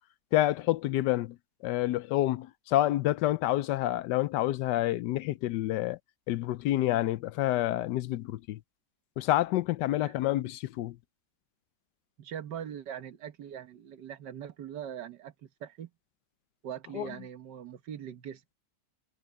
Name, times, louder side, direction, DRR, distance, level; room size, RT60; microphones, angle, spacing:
voice 1, 0.3-1.4 1.6-6.0 6.3-8.6 9.2-11.0 16.9-17.1, left 15 dB, 80° left, 1.2 m, -28 dB
voice 2, 12.2-15.9 16.6-18.4, right 9 dB, 75° right, 1.7 m, -41 dB
omnidirectional pair, 1.9 m